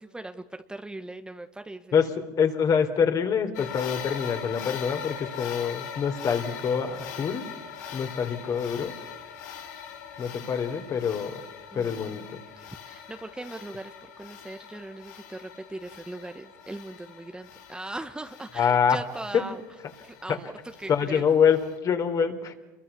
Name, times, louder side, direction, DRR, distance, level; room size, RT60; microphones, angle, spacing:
voice 1, 0.0-2.0 11.7-12.2 12.6-19.6 20.0-20.5 20.8-21.2, right 2 dB, 10° right, 7 dB, 1.3 m, -39 dB
voice 2, 2.4-7.5 7.9-8.9 10.2-11.4 11.7-12.4 18.6-19.0 20.9-22.5, left 7 dB, 40° left, 6 dB, 3.5 m, -25 dB
sound 1, 3.5-21.8, left 8 dB, 80° left, 3.0 m, -42 dB
28.5 x 22.5 x 6.9 m, 1.2 s
hypercardioid pair, 95°, 9 cm